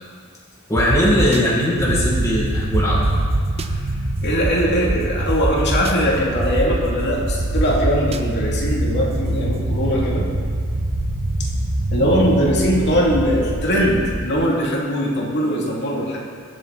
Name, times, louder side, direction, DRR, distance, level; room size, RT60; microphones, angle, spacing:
voice 1, 0.7-3.0, equal, 15° left, -6 dB, 2.2 m, -19 dB
sound 1, 0.8-1.4 1.9-2.3 2.7-3.7 4.4-4.5 4.9-5.0 5.3-5.9 6.4-6.8 7.3-8.2, right 2 dB, 30° right, 0.6 m, -22 dB
sound 2, 1.8-14.3, right 1 dB, 80° right, 1.3 m, -25 dB
voice 2, 4.2-10.3 11.9-16.2, equal, 55° left, -4 dB, 2.7 m, -21 dB
23.0 x 7.7 x 4.1 m, 2.1 s
head